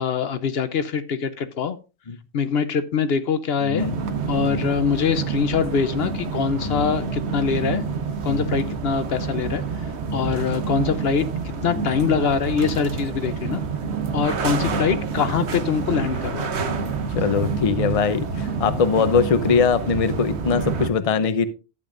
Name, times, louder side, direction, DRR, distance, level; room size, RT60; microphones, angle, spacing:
voice 1, 0.0-1.8 2.3-3.9 4.3-7.8 8.2-9.6 10.1-11.3 11.6-13.6 14.1-16.5, left 6 dB, 70° left, 11 dB, 1.0 m, -23 dB
voice 2, 3.6-4.0 4.4-4.7 6.5-6.8 8.3-8.5 10.0-10.2 11.7-11.9 14.3-14.9 17.2-21.5, left 6 dB, 40° left, 11 dB, 0.7 m, -22 dB
sound 1, 3.8-20.9, right 5 dB, 85° right, 1.2 m, -28 dB
12.0 x 8.4 x 2.5 m, 0.30 s
omnidirectional pair, 1.1 m